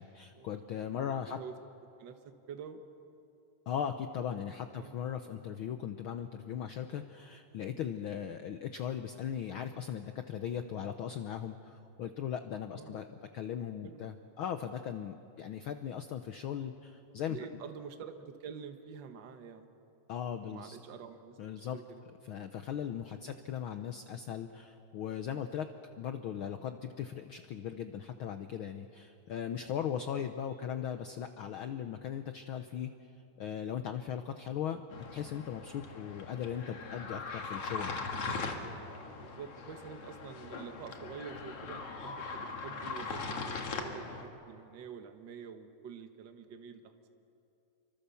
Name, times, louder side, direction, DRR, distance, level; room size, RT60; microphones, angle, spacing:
voice 1, 0.0-1.4 3.7-17.4 20.1-20.8 21.4-21.8 22.2-25.7 26.0-32.9 33.4-34.8 35.1-38.1, left 9 dB, 90° left, 8 dB, 1.1 m, -38 dB
voice 2, 0.9-1.5 2.0-2.9 4.7-5.0 12.7-13.0 13.8-14.0 17.3-19.7 20.4-21.4 21.7-22.0 23.2-23.5 29.9-30.6 35.8-36.0 39.1-47.1, right 6 dB, 50° right, 7 dB, 1.6 m, -47 dB
sound 1, 34.9-44.2, left 4 dB, 55° left, 2.7 m, -40 dB
27.0 x 24.5 x 7.0 m, 2.7 s
omnidirectional pair, 3.3 m